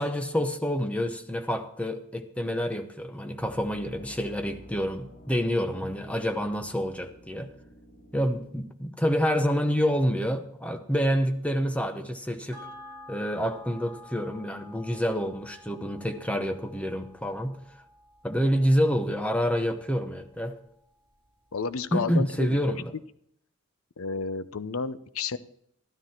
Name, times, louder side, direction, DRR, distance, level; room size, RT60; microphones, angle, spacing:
voice 1, 0.0-7.5 8.1-12.7 13.1-17.6 18.2-20.6 21.9-22.9, equal, 5° left, 0.9 m, -28 dB
sound 1, 3.4-8.5, left 1 dB, 40° left, 2.5 m, -51 dB
sound 2, 12.5-21.3 21.6-21.7, left 1 dB, 25° right, 4.0 m, -51 dB
voice 2, 21.5-22.8 24.0-25.4, left 5 dB, 80° left, 0.7 m, -31 dB
13.0 x 12.5 x 4.4 m
head